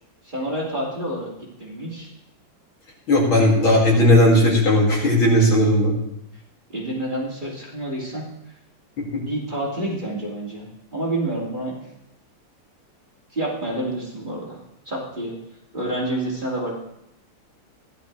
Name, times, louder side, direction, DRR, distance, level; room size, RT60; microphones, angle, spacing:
voice 1, 0.2-1.3 1.6-2.1 6.7-8.3 9.1-10.6 10.9-11.8 13.3-14.6 14.9-15.3 15.7-16.7, right 1 dB, 25° right, -5 dB, 2.7 m, -28 dB
voice 2, 3.1-5.9, left 1 dB, 75° left, -3 dB, 3.5 m, -16 dB
15.0 x 11.5 x 3.4 m, 0.81 s
omnidirectional pair, 2.3 m